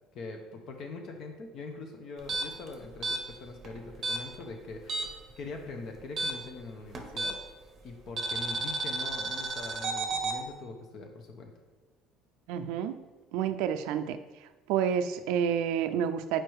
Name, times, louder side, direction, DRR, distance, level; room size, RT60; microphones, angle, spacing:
voice 1, 0.1-7.4 7.8-11.5, left 3 dB, 50° left, 4 dB, 0.7 m, -43 dB
sound 1, 2.2-5.3 5.6-7.6 8.2-10.4, right 2 dB, 35° right, 0.7 m, -33 dB
voice 2, 12.5-13.0 13.3-14.2 14.7-16.4, right 8 dB, 80° right, 10 dB, 0.4 m, -29 dB
4.7 x 4.5 x 4.7 m, 1.2 s
cardioid pair, 140°, 0 cm